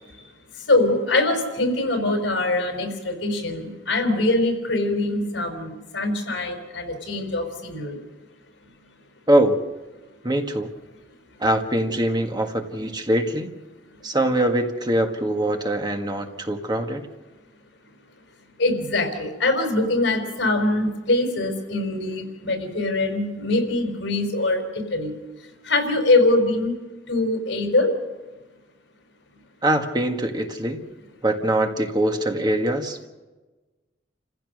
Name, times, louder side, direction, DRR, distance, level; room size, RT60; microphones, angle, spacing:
voice 1, 0.6-8.0 18.6-25.2 25.6-26.8 27.1-28.0, left 2 dB, 70° left, 5 dB, 4.8 m, -23 dB
voice 2, 9.3-9.6 10.2-10.7 11.4-13.5 14.0-17.1 29.6-30.8 31.2-33.1, right 1 dB, 25° right, 4 dB, 1.7 m, -23 dB
29.0 x 15.5 x 6.5 m, 1.2 s
head